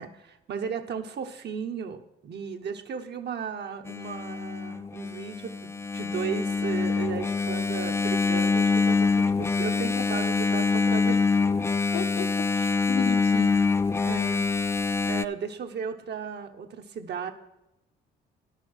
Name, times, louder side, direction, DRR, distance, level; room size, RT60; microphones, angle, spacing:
voice 1, 0.0-11.2 14.0-14.5 15.0-17.3, right 6 dB, 60° right, 1.0 m, -35 dB
Engine, 3.9-15.2, left 4 dB, 15° left, 0.3 m, -25 dB
voice 2, 11.9-13.8, left 8 dB, 60° left, 0.9 m, -34 dB
10.5 x 6.8 x 6.4 m
cardioid pair, 90°, 20 cm